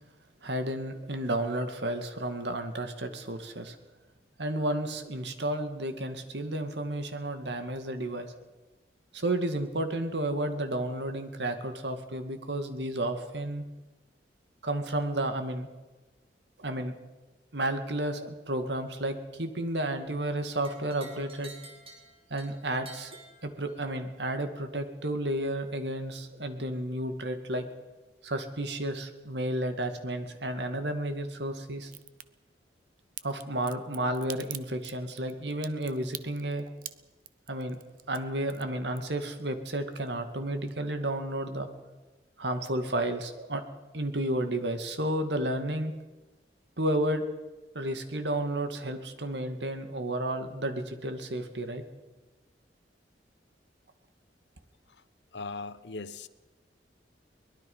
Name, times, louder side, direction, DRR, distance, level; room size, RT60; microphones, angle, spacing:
voice 1, 0.4-3.8 4.4-8.3 9.1-13.7 14.6-15.7 16.6-16.9 17.5-21.5 22.3-23.2 23.4-27.7 28.2-31.9 33.2-36.7 37.5-37.8 38.1-41.7 42.4-43.6 43.9-45.9 46.8-47.2 47.7-51.8, right 1 dB, 75° right, 7 dB, 2.3 m, -32 dB
sound 1, 20.6-24.0, right 3 dB, 35° right, 4.9 m, -51 dB
Crack, 31.9-32.2 33.2-39.4 39.7-40.4 40.7-40.8, right 11 dB, 50° right, 0.9 m, -44 dB
voice 2, 55.3-56.3, left 3 dB, 80° left, 15 dB, 1.0 m, -38 dB
23.5 x 21.0 x 5.7 m, 1.2 s
head